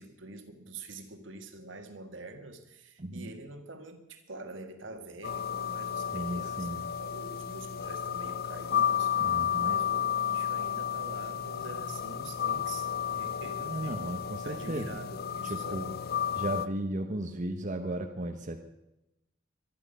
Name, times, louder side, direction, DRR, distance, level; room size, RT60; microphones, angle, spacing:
voice 1, 0.0-6.7 7.0-16.0, right 2 dB, 70° right, 6 dB, 1.9 m, -46 dB
voice 2, 3.0-3.3 6.1-6.9 9.2-9.8 13.6-15.0 15.5-15.9 16.3-18.6, right 1 dB, 40° right, 4 dB, 1.1 m, -35 dB
sound 1, 5.2-16.7, left 9 dB, 50° left, 0.5 m, -32 dB
24.5 x 11.0 x 5.5 m, 0.92 s
head